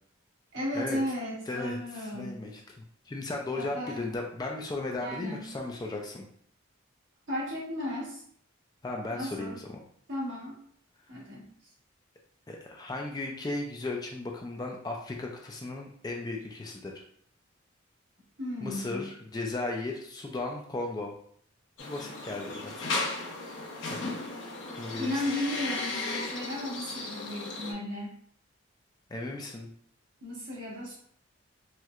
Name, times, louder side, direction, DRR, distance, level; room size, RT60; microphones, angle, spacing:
voice 1, 0.5-2.4 3.5-4.2 5.0-5.5 7.3-8.2 9.1-9.6 10.1-10.6 11.1-11.5 18.4-19.1 25.0-28.1 30.2-31.0, left 1 dB, 70° right, -6 dB, 1.4 m, -35 dB
voice 2, 1.5-6.3 8.8-9.6 12.5-17.0 18.6-21.1 21.8-22.9 23.9-24.1 24.8-25.2 29.1-29.7, left 2 dB, 20° left, 1 dB, 0.3 m, -36 dB
sound 1, 21.8-27.7, left 3 dB, 65° left, 0.6 m, -35 dB
4.3 x 2.1 x 2.4 m, 0.62 s
head